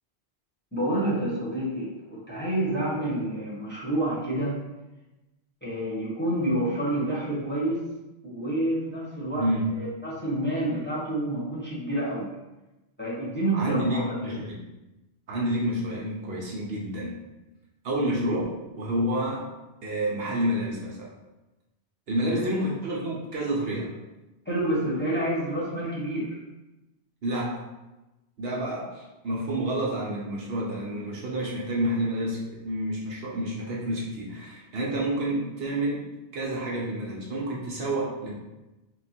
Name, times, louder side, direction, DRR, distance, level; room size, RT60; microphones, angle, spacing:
voice 1, 0.7-4.6 5.6-7.9 8.2-12.3 13.0-14.4 24.4-26.4, right 1 dB, 10° left, -8 dB, 1.0 m, -28 dB
voice 2, 9.4-9.7 13.5-14.6 15.3-17.1 17.8-19.5 19.8-21.1 22.1-23.9 27.2-27.6 28.4-36.1 36.3-38.3, right 1 dB, 65° right, -4 dB, 1.0 m, -29 dB
3.7 x 2.3 x 4.2 m, 1.0 s
omnidirectional pair, 1.1 m